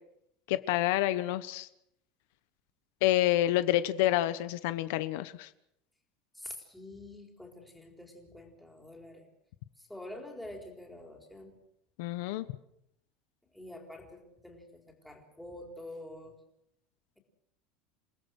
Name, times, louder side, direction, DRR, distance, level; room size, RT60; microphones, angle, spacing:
voice 1, 0.5-1.7 3.0-5.5 12.0-12.5, left 14 dB, 70° left, 13 dB, 1.1 m, -28 dB
voice 2, 6.3-9.3 9.8-11.5 13.5-16.4, left 1 dB, ahead, 1 dB, 4.3 m, -47 dB
29.0 x 18.5 x 6.5 m, 0.78 s
cardioid pair, 165°, 0 cm